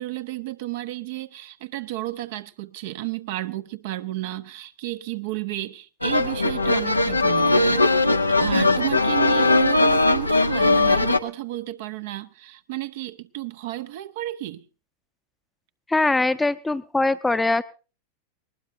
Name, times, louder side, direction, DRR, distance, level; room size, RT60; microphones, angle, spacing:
voice 1, 0.0-7.9 8.4-14.7, right 16 dB, 50° right, 0.7 m, -32 dB
sound 1, 6.0-11.2, left 2 dB, 85° left, 0.7 m, -19 dB
voice 2, 15.9-17.6, left 2 dB, 10° left, 0.7 m, -22 dB
20.0 x 19.5 x 2.7 m
figure-of-eight pair, 90°, 0 cm